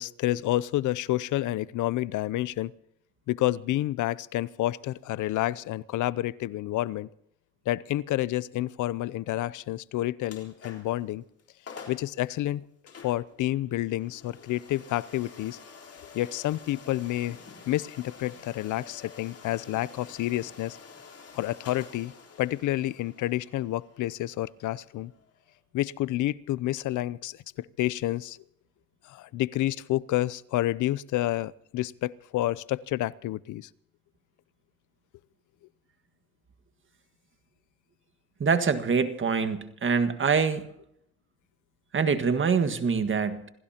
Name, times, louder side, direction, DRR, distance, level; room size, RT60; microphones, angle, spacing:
voice 1, 0.0-2.7 3.3-7.1 7.7-11.2 11.9-12.6 13.0-15.6 16.1-17.4 17.7-20.8 21.3-22.1 22.4-25.1 25.7-28.4 29.1-33.7, left 15 dB, 80° left, 20 dB, 0.6 m, -29 dB
sound 1, 10.2-11.0 11.4-11.5 11.7-12.1 12.9-25.6, left 5 dB, 50° left, 3.9 m, -49 dB
voice 2, 38.4-40.6 41.9-43.5, right 5 dB, 40° right, 9 dB, 1.7 m, -25 dB
27.5 x 17.0 x 2.9 m, 0.75 s
cardioid pair, 90°, 30 cm